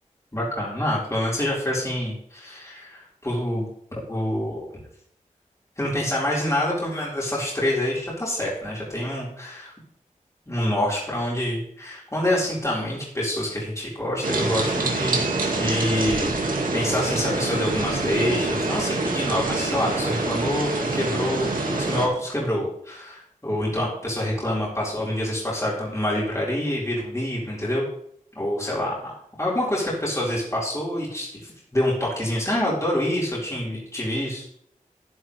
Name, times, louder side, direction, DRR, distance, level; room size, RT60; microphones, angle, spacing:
voice 1, 0.3-3.7 4.1-4.7 5.8-9.7 10.5-15.2 15.5-27.8 28.3-34.4, left 1 dB, 20° left, -6 dB, 4.8 m, -26 dB
sound 1, 14.2-22.1, right 3 dB, 90° right, 2.2 m, -26 dB
11.5 x 10.5 x 3.4 m, 0.68 s
cardioid pair, 50°, 14 cm